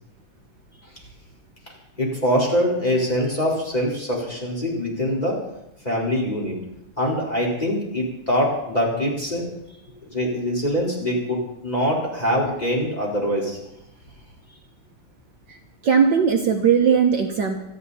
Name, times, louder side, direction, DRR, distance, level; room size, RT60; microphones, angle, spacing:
voice 1, 2.0-5.4 5.8-6.6 7.0-9.4 10.1-13.6, equal, 15° left, -3 dB, 4.4 m, -23 dB
voice 2, 15.8-17.6, right 6 dB, 60° right, 3 dB, 1.7 m, -18 dB
27.0 x 10.0 x 4.2 m, 0.86 s
omnidirectional pair, 2.4 m